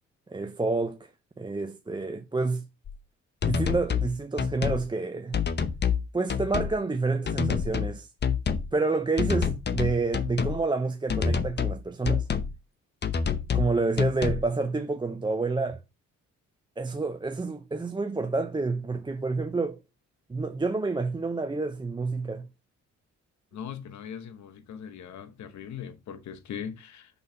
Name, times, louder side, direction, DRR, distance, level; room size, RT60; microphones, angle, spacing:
voice 1, 0.3-1.0 1.4-2.7 3.4-5.4 6.1-8.1 8.7-12.3 13.5-15.8 16.8-19.8 20.3-22.5, right 3 dB, 15° right, 0.5 m, -28 dB
sound 1, 2.9-3.0 3.4-4.1 4.4-4.8 5.3-6.0 6.3-6.7 7.3-7.9 8.2-8.7 9.2-10.6 11.1-11.8 12.0-12.5 13.0-13.7 14.0-14.4, left 6 dB, 35° left, 0.8 m, -27 dB
voice 2, 23.5-27.1, left 8 dB, 70° left, 1.0 m, -40 dB
5.4 x 3.9 x 5.6 m
cardioid pair, 80°, 30 cm